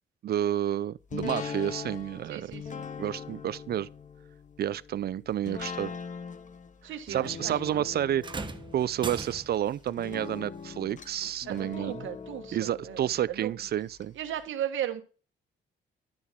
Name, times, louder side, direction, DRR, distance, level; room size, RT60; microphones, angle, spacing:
voice 1, 0.2-2.5 3.0-3.9 4.6-5.9 7.1-8.2 8.7-12.1 12.5-14.1, right 11 dB, 55° right, 0.5 m, -30 dB
sound 1, 1.1-14.0 14.4-14.5, left 6 dB, 40° left, 1.0 m, -42 dB
voice 2, 2.3-2.9 6.8-8.0 11.4-13.5 14.1-15.0, right 11 dB, 75° right, 1.4 m, -37 dB
sound 2, 8.2-9.8 11.2-11.4 12.2-12.3, right 4 dB, 25° right, 1.1 m, -39 dB
11.5 x 6.4 x 3.6 m
cardioid pair, 90°, 20 cm